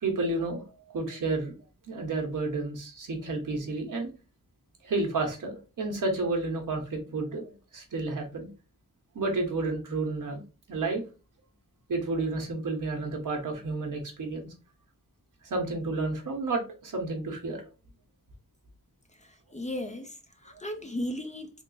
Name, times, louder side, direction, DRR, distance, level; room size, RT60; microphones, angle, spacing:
voice 1, 0.0-1.6 1.9-4.1 4.8-8.5 9.1-10.4 10.7-11.0 11.9-14.5 15.4-17.6 20.5-20.6, right 3 dB, 75° right, 1.1 m, -31 dB
voice 2, 19.1-21.5, left 1 dB, 20° left, 0.5 m, -36 dB
3.6 x 2.0 x 3.9 m
wide cardioid pair, 130°, 32 cm